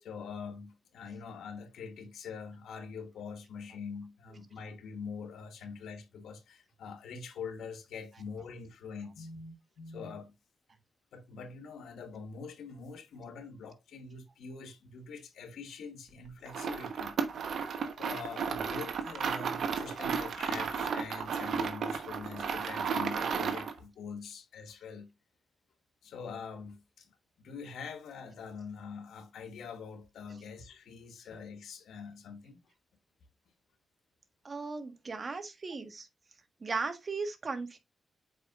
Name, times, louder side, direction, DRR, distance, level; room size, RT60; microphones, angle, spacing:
voice 1, 0.0-10.3 11.1-17.1 18.0-25.1 26.0-32.6, left 5 dB, 90° left, 1.2 m, -44 dB
sound 1, 16.5-23.8, right 6 dB, 75° right, 1.0 m, -34 dB
voice 2, 34.4-36.1 36.6-37.8, right 4 dB, 45° right, 1.4 m, -37 dB
7.7 x 5.0 x 2.4 m
cardioid pair, 70°, 0 cm